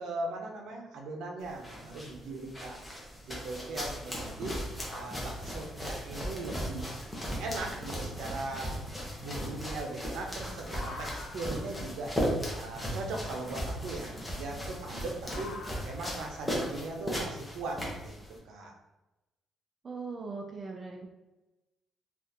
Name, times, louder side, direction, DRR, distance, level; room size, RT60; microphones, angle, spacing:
voice 1, 0.0-2.8 3.3-4.6 4.9-6.9 7.4-8.8 9.2-12.2 12.5-15.5 15.8-18.1 18.4-18.8, right 2 dB, 75° right, 1 dB, 0.6 m, -39 dB
sound 1, 1.4-18.4, equal, 5° left, 0.7 m, -37 dB
sound 2, 10.6-17.1, left 3 dB, 50° left, 0.4 m, -49 dB
voice 2, 19.8-21.1, right 4 dB, 30° right, 1 dB, 0.3 m, -39 dB
3.5 x 2.4 x 2.7 m, 1.0 s
cardioid pair, 175°, 0 cm